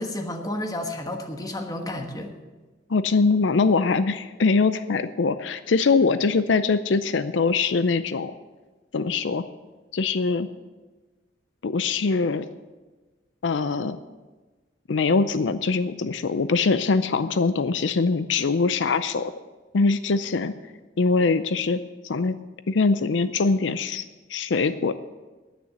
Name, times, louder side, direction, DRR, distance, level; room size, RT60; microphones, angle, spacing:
voice 1, 0.0-2.3, left 1 dB, 20° left, 5 dB, 1.3 m, -31 dB
voice 2, 2.9-8.3 8.9-9.4 9.9-10.5 11.6-12.5 13.4-14.0 14.9-19.3 19.7-20.5 21.0-22.4 22.7-24.0 24.3-24.9, left 4 dB, 85° left, 13 dB, 0.5 m, -22 dB
10.0 x 9.1 x 8.0 m, 1.2 s
head